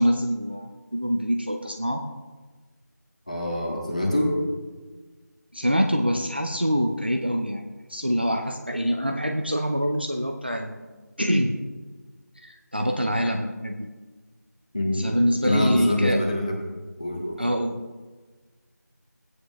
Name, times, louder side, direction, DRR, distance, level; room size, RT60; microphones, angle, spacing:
voice 1, 0.0-2.1 5.5-7.6 7.9-10.8 11.2-11.6 12.4-13.9 14.9-16.2 17.4-17.8, equal, 35° right, 3 dB, 0.6 m, -25 dB
voice 2, 3.3-4.3 14.7-15.1 15.4-16.6 17.0-17.4, left 1 dB, 25° left, -1 dB, 1.3 m, -25 dB
17.0 x 9.3 x 2.3 m, 1.3 s
figure-of-eight pair, 180°, 10 cm